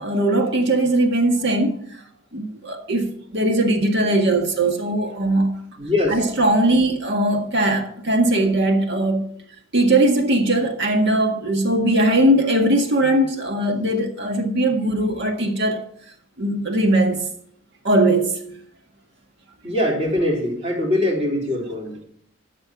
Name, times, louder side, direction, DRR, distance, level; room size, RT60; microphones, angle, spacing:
voice 1, 0.0-1.8 2.3-5.6 6.1-9.2 9.7-15.8 16.4-17.3 17.8-18.4, right 1 dB, 60° right, 1.8 m, -20 dB
voice 2, 5.8-6.2 19.6-22.0, left 1 dB, 30° right, 3.8 m, -22 dB
12.5 x 6.8 x 5.9 m
head